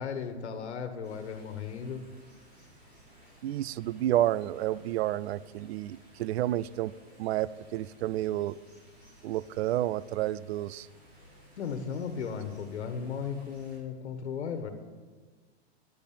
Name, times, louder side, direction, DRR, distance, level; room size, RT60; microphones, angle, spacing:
voice 1, 0.0-2.0 11.6-14.7, left 6 dB, 80° left, 8 dB, 1.4 m, -36 dB
sound 1, 1.0-13.8, equal, 25° right, 4.6 m, -57 dB
voice 2, 3.4-6.9 7.2-8.6 9.2-10.9, right 13 dB, 70° right, 20 dB, 0.5 m, -30 dB
10.5 x 8.4 x 8.7 m, 1.4 s
hypercardioid pair, 135°, 33 cm